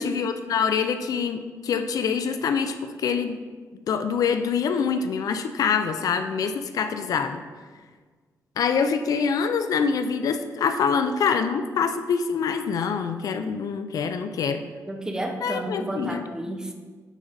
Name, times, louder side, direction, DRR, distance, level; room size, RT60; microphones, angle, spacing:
voice 1, 0.0-3.4 3.9-7.4 8.6-14.6 15.4-16.2, left 6 dB, 70° left, 8 dB, 0.4 m, -25 dB
voice 2, 14.9-16.7, right 1 dB, 10° right, 3 dB, 0.6 m, -31 dB
9.1 x 3.9 x 4.0 m, 1.5 s
wide cardioid pair, 130°, 6 cm